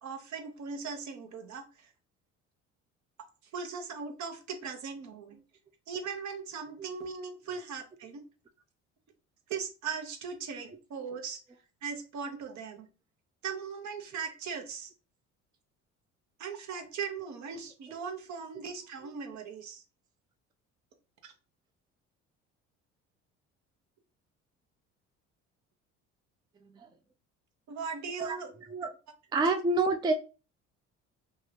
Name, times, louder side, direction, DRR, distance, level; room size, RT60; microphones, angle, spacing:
voice 1, 0.0-1.9 3.5-5.4 5.9-8.2 9.5-11.4 11.8-12.9 13.4-14.9 16.4-19.8 21.2-21.3 27.7-28.5, right 5 dB, 55° right, 0.8 m, -39 dB
voice 2, 29.3-30.1, right 3 dB, 15° right, 0.4 m, -28 dB
2.8 x 2.3 x 3.3 m
hypercardioid pair, 65°, 34 cm